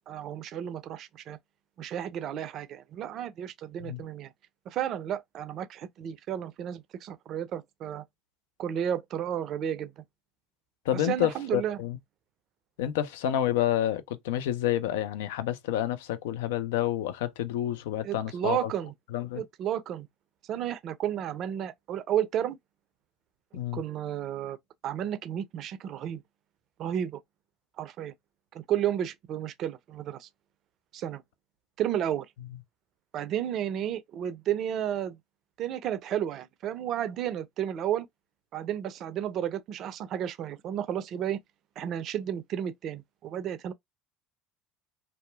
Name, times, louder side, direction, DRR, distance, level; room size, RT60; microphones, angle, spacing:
voice 1, 0.0-1.4 1.8-4.3 4.7-8.0 8.6-10.0 10.9-11.8 18.0-18.9 19.3-20.1 20.5-22.6 23.7-24.6 24.8-26.2 26.8-27.2 27.8-28.1 28.5-30.3 30.9-31.2 31.8-32.3 33.1-35.2 35.6-38.1 38.5-41.4 41.8-43.7, right 10 dB, 50° right, 0.4 m, -32 dB
voice 2, 10.9-12.0 12.8-18.7 19.1-19.4 23.5-23.8, left 12 dB, 70° left, 0.4 m, -29 dB
2.6 x 2.3 x 2.2 m
hypercardioid pair, 70°, 0 cm